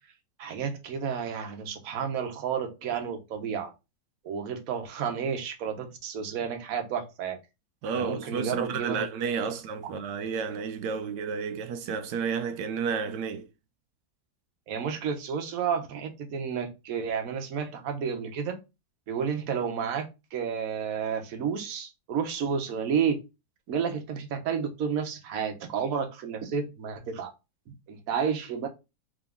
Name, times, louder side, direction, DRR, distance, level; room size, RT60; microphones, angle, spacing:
voice 1, 0.4-3.7 4.2-7.4 7.8-9.0 14.7-18.6 19.1-23.2 23.7-27.3 27.9-28.7, right 7 dB, 60° right, 1.2 m, -31 dB
voice 2, 7.8-13.5, right 6 dB, 85° right, 1.2 m, -31 dB
3.7 x 3.0 x 3.4 m
omnidirectional pair, 1.8 m